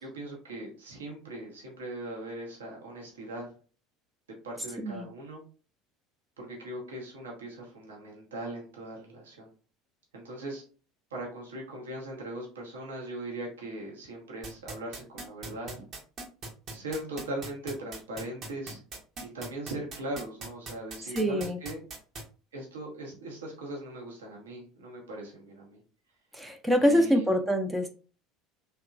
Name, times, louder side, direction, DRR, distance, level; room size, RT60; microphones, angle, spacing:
voice 1, 0.0-3.5 4.4-5.4 6.4-9.5 10.1-10.6 11.1-15.9 16.7-18.8 19.3-21.8 22.5-25.8 26.8-27.4, right 1 dB, 70° right, -1 dB, 0.8 m, -39 dB
voice 2, 4.8-5.1 21.1-21.6 26.3-27.9, equal, 10° right, 6 dB, 0.4 m, -25 dB
sound 1, 14.4-22.2, right 2 dB, 40° right, 0.7 m, -39 dB
2.8 x 2.2 x 2.4 m, 0.37 s
figure-of-eight pair, 65°, 0 cm